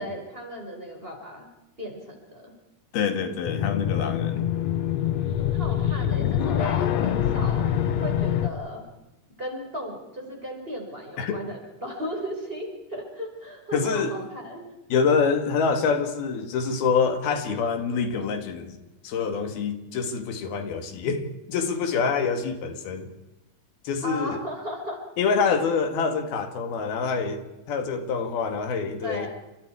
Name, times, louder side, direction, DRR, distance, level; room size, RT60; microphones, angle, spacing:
voice 1, 0.0-1.5 1.8-2.5 5.4-7.7 8.0-8.8 9.4-14.6 24.0-25.0 29.0-29.3, equal, 15° right, 1 dB, 5.5 m, -36 dB
voice 2, 2.9-4.5 11.2-11.4 13.7-14.2 14.9-23.1 23.9-24.4 25.2-29.3, left 5 dB, 90° left, 6 dB, 4.0 m, -26 dB
sound 1, 3.5-8.5, left 10 dB, 65° left, 1.9 m, -25 dB
29.5 x 27.0 x 4.8 m, 1.0 s
omnidirectional pair, 4.2 m